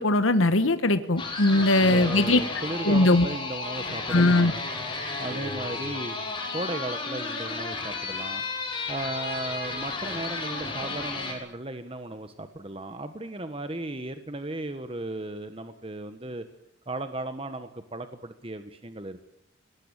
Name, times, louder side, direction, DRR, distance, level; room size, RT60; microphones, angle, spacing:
voice 1, 0.0-2.4 2.8-3.2 4.1-4.5, left 2 dB, 90° left, 10 dB, 1.4 m, -20 dB
sound 1, 1.2-11.3, left 3 dB, 25° left, 6.3 m, -33 dB
voice 2, 1.5-4.6 5.2-8.4 8.9-16.4 16.9-19.2, right 2 dB, 30° right, 8 dB, 1.4 m, -36 dB
25.5 x 19.5 x 9.0 m, 0.75 s
head